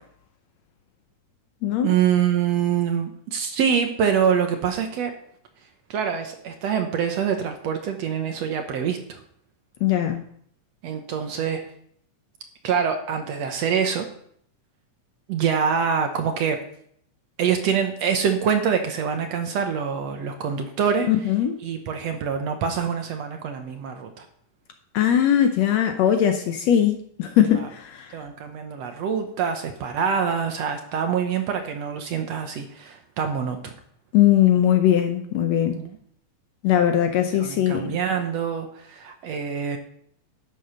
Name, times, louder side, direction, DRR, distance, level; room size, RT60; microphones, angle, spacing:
voice 1, 1.8-5.1 5.9-9.2 10.8-11.7 12.6-14.1 15.3-16.6 17.4-21.1 21.6-24.3 27.6-27.7 28.1-33.7 35.8-35.9 37.3-39.8, right 7 dB, 65° right, 5 dB, 1.8 m, -25 dB
voice 2, 9.8-10.2 21.1-21.5 24.9-28.2 34.1-35.8 36.6-38.0, left 10 dB, 70° left, 6 dB, 1.7 m, -20 dB
11.5 x 7.7 x 5.4 m, 0.66 s
omnidirectional pair, 3.6 m